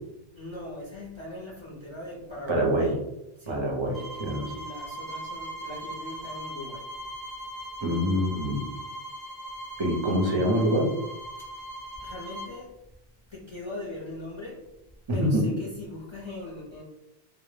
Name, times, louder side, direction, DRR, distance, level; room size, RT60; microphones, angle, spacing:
voice 1, 0.3-3.0 3.4-3.7 4.4-6.9 11.4-11.6 12.0-12.7 13.3-14.6 15.1-16.8, left 2 dB, 40° left, -5 dB, 0.4 m, -40 dB
voice 2, 2.5-2.9 3.5-4.5 7.8-8.6 9.8-10.9 15.2-15.4, equal, 40° right, -2 dB, 0.4 m, -25 dB
sound 1, 3.9-12.5, right 1 dB, ahead, 0.7 m, -39 dB
2.0 x 2.0 x 3.1 m, 0.89 s
omnidirectional pair, 1.0 m